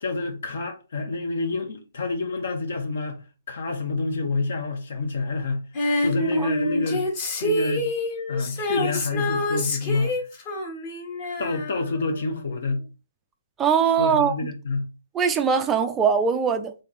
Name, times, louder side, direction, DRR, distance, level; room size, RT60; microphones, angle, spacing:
voice 1, 0.0-5.6 6.0-7.1 7.4-7.9 8.3-10.1 11.4-12.8 14.0-14.8, left 3 dB, 60° left, 1.2 m, -28 dB
Female singing, 5.8-12.4 12.7-12.8, left 1 dB, 30° left, 1.3 m, -27 dB
voice 2, 13.6-14.3 15.1-16.7, right 7 dB, 10° right, 0.4 m, -21 dB
3.8 x 3.3 x 4.1 m
hypercardioid pair, 165°, 0 cm